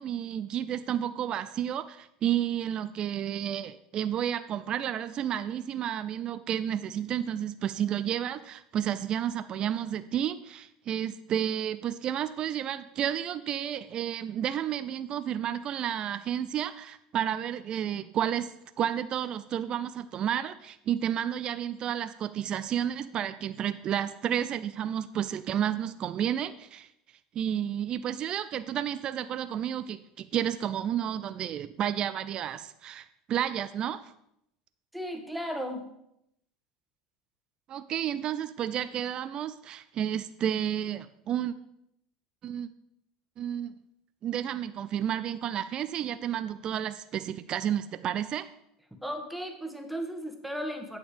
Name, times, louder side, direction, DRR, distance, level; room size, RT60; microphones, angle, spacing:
voice 1, 0.0-18.5 18.8-26.9 27.3-34.0 37.7-41.5 42.4-42.7 43.4-43.7 44.2-48.5, right 10 dB, 45° right, 12 dB, 0.5 m, -31 dB
voice 2, 34.9-35.8 49.0-51.0, equal, ahead, 4 dB, 1.5 m, -35 dB
8.7 x 6.8 x 5.2 m, 0.78 s
supercardioid pair, 100°, 2 cm